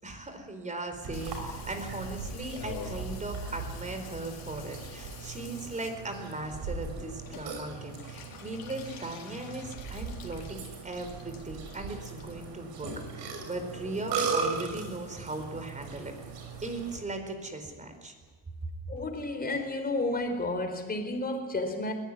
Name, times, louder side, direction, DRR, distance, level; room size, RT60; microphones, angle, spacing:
voice 1, 0.0-16.1 16.6-18.1, right 2 dB, 20° right, 4.4 m, -38 dB
Burping eructation, 1.0-17.0, right 5 dB, 75° right, 6.1 m, -38 dB
Water tap faucet / Bathtub (filling or washing), 1.1-15.7 15.9-16.7 17.0-17.1 17.3-17.4 17.6-18.0 18.3-18.4 18.6-18.7 19.0-19.1 19.3-19.4 19.6-19.7 20.0-20.1 20.4-20.5 20.8-20.9, left 8 dB, 55° left, 4.0 m, -50 dB
voice 2, 18.9-21.9, left 2 dB, 20° left, 4.4 m, -31 dB
21.5 x 17.0 x 9.7 m
cardioid pair, 120°, 41 cm